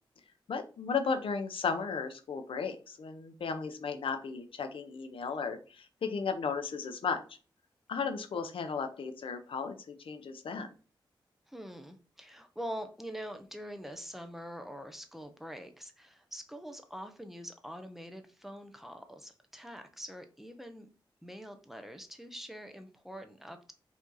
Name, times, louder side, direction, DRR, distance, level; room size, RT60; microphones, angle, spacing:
voice 1, 0.5-7.4 7.9-10.7, left 5 dB, 85° left, 8 dB, 0.7 m, -35 dB
voice 2, 11.5-20.9 21.2-23.7, equal, 5° right, 7 dB, 0.5 m, -44 dB
5.0 x 2.8 x 3.9 m, 0.36 s
wide cardioid pair, 165°, 9 cm